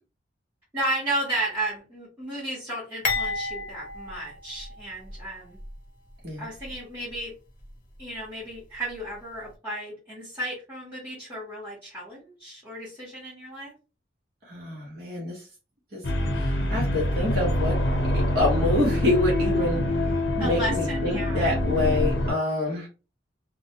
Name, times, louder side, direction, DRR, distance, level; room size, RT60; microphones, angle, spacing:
voice 1, 0.7-5.6 6.4-7.3 8.0-13.7 20.4-21.5, right 1 dB, 10° right, -9 dB, 0.9 m, -33 dB
sound 1, 3.0-5.2 5.6-5.7 6.6-6.7, left 4 dB, 45° left, 0.7 m, -31 dB
voice 2, 14.4-15.4 15.9-16.0 16.3-17.8 18.1-19.8 20.4-22.9, left 2 dB, 55° right, -3 dB, 0.9 m, -26 dB
sound 2, 16.0-22.3, left 1 dB, 75° left, 0.7 m, -25 dB
2.2 x 2.1 x 2.8 m, 0.33 s
head